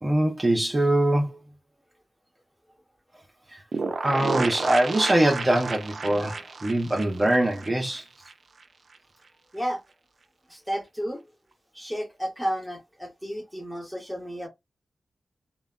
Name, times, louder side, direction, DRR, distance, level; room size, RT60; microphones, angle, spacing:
voice 1, 0.0-1.4 3.5-3.6 4.0-8.0, right 1 dB, 30° right, 0.7 m, -23 dB
sound 1, 3.7-8.3 8.6-8.7 8.9-9.0, right 4 dB, 65° right, 0.4 m, -32 dB
voice 2, 10.5-11.3 11.7-14.5, equal, 5° left, 1.0 m, -32 dB
3.0 x 2.1 x 2.3 m
cardioid pair, 50°, 0 cm